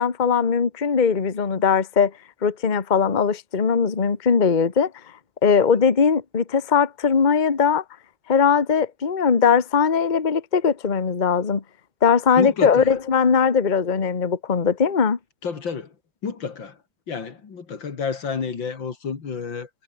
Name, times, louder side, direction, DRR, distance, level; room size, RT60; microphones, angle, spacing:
voice 1, 0.0-2.1 2.4-4.9 5.4-7.8 8.3-11.6 12.0-15.2, left 6 dB, 25° left, 1.3 m, -20 dB
voice 2, 12.4-12.9 15.4-15.9 16.2-16.8 17.1-19.7, left 5 dB, 80° left, 3.2 m, -30 dB
omnidirectional pair, 2.0 m